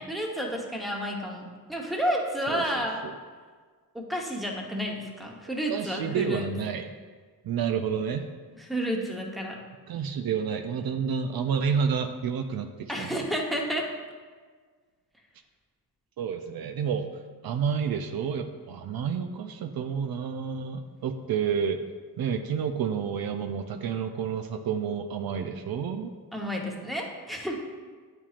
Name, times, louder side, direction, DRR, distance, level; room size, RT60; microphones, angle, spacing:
voice 1, 0.0-3.1 3.9-6.5 8.6-9.6 12.9-13.9 26.3-27.6, equal, ahead, 0 dB, 0.9 m, -31 dB
voice 2, 5.7-6.9 7.4-8.3 9.9-13.3 16.2-17.1 17.4-21.8 22.2-26.1, right 7 dB, 70° right, 6 dB, 0.5 m, -30 dB
8.8 x 4.4 x 2.4 m, 1.5 s
cardioid pair, 75°, 38 cm